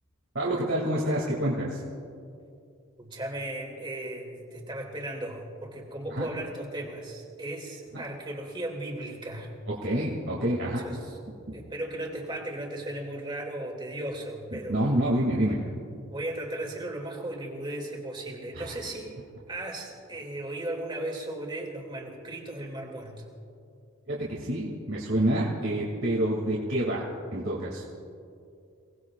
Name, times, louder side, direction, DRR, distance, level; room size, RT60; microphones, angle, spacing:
voice 1, 0.3-1.8 6.1-6.3 9.8-10.9 11.5-11.6 14.7-15.6 18.5-18.7 24.1-27.8, right 1 dB, 70° right, -5 dB, 2.4 m, -27 dB
voice 2, 3.0-9.5 10.8-11.2 11.5-15.2 16.1-19.1 19.5-23.3, right 1 dB, 20° right, 0 dB, 2.5 m, -36 dB
29.5 x 19.0 x 2.4 m, 2.5 s
head